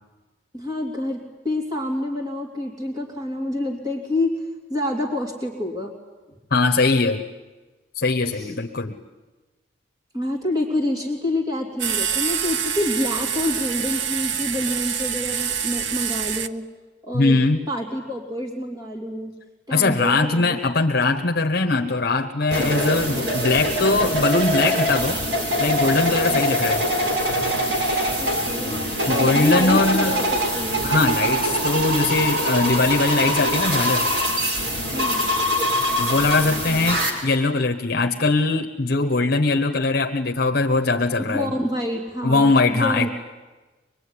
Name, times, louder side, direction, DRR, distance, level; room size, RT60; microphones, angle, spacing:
voice 1, 0.5-4.4 4.7-5.9 8.3-8.5 10.1-16.6 17.0-17.4 17.7-19.3 19.7-20.6 26.3-26.4 28.2-28.8 29.1-30.2 30.5-30.9 34.9-35.2 41.3-43.1, left 1 dB, 20° right, 0 dB, 3.1 m, -27 dB
voice 2, 6.5-7.3 7.9-9.0 17.1-17.6 19.7-25.2 25.6-26.8 29.1-30.3 30.8-34.1 36.0-41.5 42.2-43.1, left 3 dB, 55° left, 4 dB, 1.2 m, -21 dB
sound 1, 11.8-16.5, right 8 dB, 85° right, 0.9 m, -26 dB
sound 2, 22.5-37.1, equal, 65° right, 4.8 m, -23 dB
24.5 x 21.5 x 9.9 m, 1.2 s
head